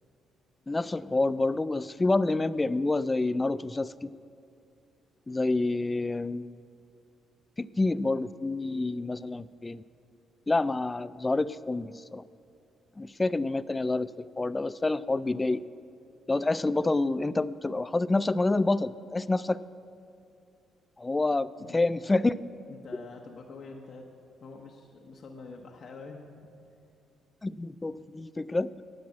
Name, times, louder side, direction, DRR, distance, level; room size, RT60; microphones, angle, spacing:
voice 1, 0.7-4.1 5.3-6.6 7.6-9.8 10.5-12.2 13.0-15.6 16.3-19.6 21.0-22.4 27.4-28.7, left 2 dB, 20° left, 16 dB, 0.3 m, -28 dB
voice 2, 22.7-24.1 24.4-26.5, left 3 dB, 55° left, 1 dB, 1.0 m, -46 dB
10.5 x 7.6 x 8.5 m, 2.5 s
cardioid pair, 90°, 0 cm